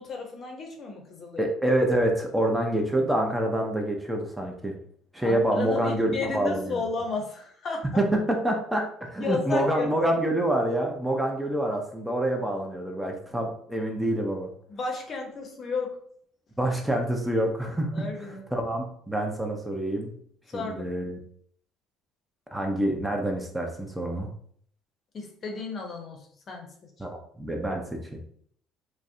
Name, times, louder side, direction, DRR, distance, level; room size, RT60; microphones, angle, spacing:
voice 1, 0.0-1.5 5.2-7.9 9.2-10.1 14.7-16.0 17.9-18.4 20.5-20.9 25.1-26.2 26.5-26.7, left 4 dB, 45° left, 2 dB, 0.6 m, -33 dB
voice 2, 1.4-4.7 5.1-6.8 8.0-14.5 16.6-18.1 18.5-20.1 20.5-21.2 22.5-24.3 27.0-28.0, right 1 dB, 10° right, 2 dB, 0.5 m, -27 dB
2.5 x 2.0 x 2.4 m, 0.62 s
hypercardioid pair, 65°, 0 cm